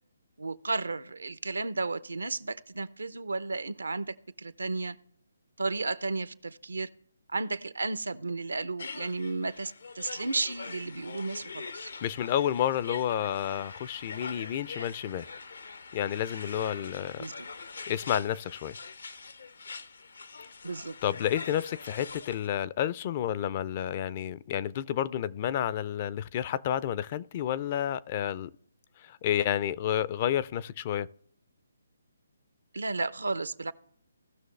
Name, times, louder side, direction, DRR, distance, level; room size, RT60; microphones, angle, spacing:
voice 1, 0.4-5.0 5.6-6.9 7.3-11.9 17.2-17.5 20.6-21.0 32.7-33.7, right 3 dB, 80° right, 0.6 m, -33 dB
sound 1, 8.8-22.5, left 4 dB, 70° left, 0.7 m, -43 dB
voice 2, 12.0-15.3 15.9-17.2 17.9-18.8 21.0-28.5 29.0-31.1, left 10 dB, 35° left, 0.4 m, -30 dB
17.5 x 6.2 x 3.2 m
figure-of-eight pair, 145°, 0 cm